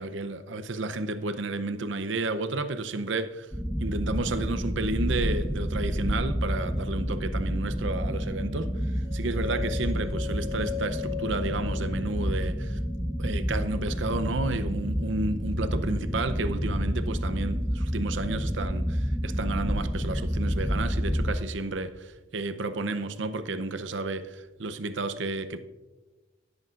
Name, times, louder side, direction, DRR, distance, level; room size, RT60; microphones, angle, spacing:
voice 1, 0.0-3.5 3.8-12.8 13.2-25.6, right 2 dB, 75° right, 0.7 m, -32 dB
sound 1, 3.5-21.4, equal, ahead, 0.5 m, -29 dB
sound 2, 9.0-13.1, left 11 dB, 20° right, 2.6 m, -39 dB
18.0 x 8.3 x 2.5 m
head